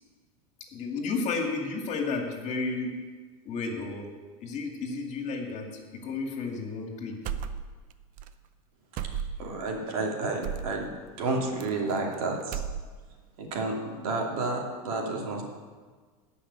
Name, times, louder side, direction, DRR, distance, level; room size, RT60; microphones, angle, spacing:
voice 1, 0.7-2.9 3.4-4.1 4.4-7.2, left 4 dB, 40° left, 2 dB, 2.2 m, -32 dB
sound 1, 7.2-7.9 8.2-8.3 9.0-9.6 10.4-10.8 11.6-12.1 12.4-13.2, right 8 dB, 45° right, 0.7 m, -34 dB
voice 2, 9.4-10.9 11.2-12.6 13.4-15.4, right 3 dB, 75° right, 0 dB, 2.7 m, -30 dB
11.5 x 5.7 x 8.7 m, 1.5 s
supercardioid pair, 120°, 19 cm